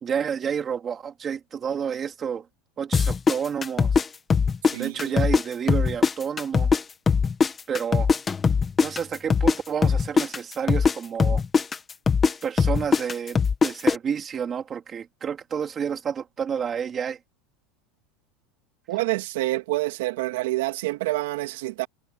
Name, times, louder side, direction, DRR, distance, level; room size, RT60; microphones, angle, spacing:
voice 1, 0.0-2.5 2.8-4.0 4.7-6.7 7.7-8.1 8.8-11.4 12.4-17.2, right 7 dB, 20° right, 3.6 m, -30 dB
sound 1, 2.9-5.4 5.7-9.6 9.8-14.0, left 5 dB, 15° left, 1.7 m, -21 dB
voice 2, 4.7-5.2 18.9-21.9, right 19 dB, 85° right, 2.7 m, -27 dB
supercardioid pair, 175°, 0 cm